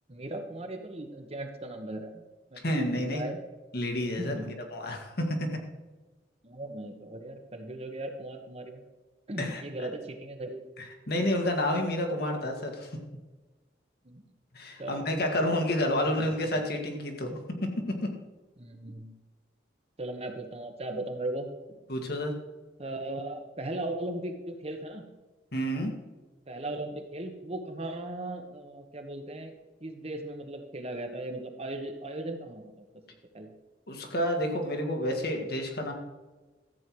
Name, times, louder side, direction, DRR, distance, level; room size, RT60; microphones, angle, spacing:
voice 1, 0.1-2.2 2.5-3.4 4.2-4.6 6.4-8.8 9.3-10.6 14.0-14.2 14.8-15.0 16.1-16.2 18.6-19.1 20.0-21.8 22.8-25.0 26.5-29.5 29.8-32.8 33.3-33.5, right 1 dB, 35° right, 5 dB, 1.2 m, -37 dB
voice 2, 2.6-3.2 3.7-4.4 4.7-5.5 9.4-9.6 11.1-13.0 14.5-17.7 18.0-18.1 21.9-22.3 25.5-25.9 33.9-35.9, left 1 dB, 60° left, 3 dB, 1.9 m, -29 dB
13.5 x 8.0 x 4.7 m, 1.2 s
head